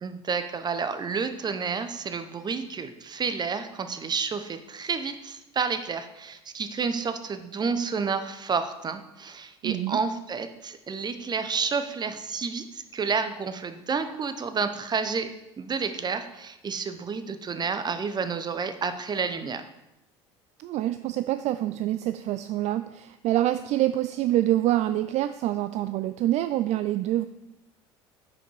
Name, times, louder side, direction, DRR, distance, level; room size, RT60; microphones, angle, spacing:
voice 1, 0.0-15.3 15.6-19.6, right 5 dB, 30° right, 10 dB, 0.8 m, -30 dB
voice 2, 9.6-10.0 20.6-27.2, right 14 dB, 50° right, 12 dB, 0.4 m, -26 dB
7.4 x 5.3 x 4.6 m, 0.89 s
hypercardioid pair, 70°, 15 cm